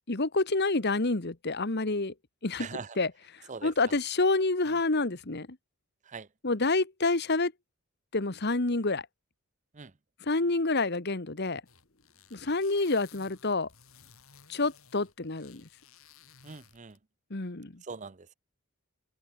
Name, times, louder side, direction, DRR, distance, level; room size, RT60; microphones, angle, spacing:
voice 1, 0.1-2.1 2.4-2.7 3.0-3.1 3.6-5.5 6.4-7.5 8.1-9.1 10.3-11.6 12.3-13.7 14.5-15.6 17.3-17.8, left 3 dB, 50° left, 1.4 m, -28 dB
voice 2, 2.6-3.0 3.5-3.7 6.1-6.3 9.7-9.9 16.4-17.0 17.8-18.3, right 4 dB, 35° right, 0.7 m, -41 dB
sound 1, 11.7-17.0, left 7 dB, 70° left, 6.9 m, -57 dB
open air
head